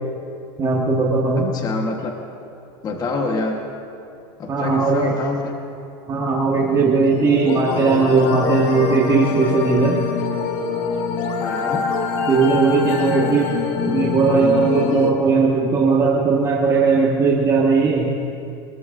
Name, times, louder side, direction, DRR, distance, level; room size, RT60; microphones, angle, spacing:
voice 1, 0.6-1.5 4.5-5.1 6.1-10.0 12.3-13.5 13.9-18.1, right 4 dB, 25° right, -3 dB, 1.7 m, -18 dB
voice 2, 1.4-2.1 2.8-3.7 4.4-5.6 11.4-11.9, left 3 dB, 30° left, 2 dB, 1.3 m, -26 dB
sound 1, 6.1-15.1, left 5 dB, 60° left, 1.9 m, -25 dB
23.5 x 20.5 x 2.6 m, 2.6 s
supercardioid pair, 135°, 14 cm